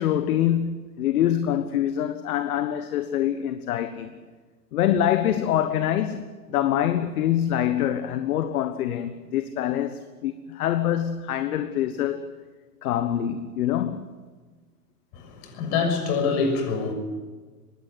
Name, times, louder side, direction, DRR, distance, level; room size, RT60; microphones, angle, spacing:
voice 1, 0.0-4.2 4.7-12.2 12.8-14.1, left 11 dB, 60° left, 1.4 m, -25 dB
voice 2, 15.1-16.9, left 5 dB, 45° left, 6.5 m, -25 dB
21.0 x 17.0 x 9.5 m
hypercardioid pair, 110°, 49 cm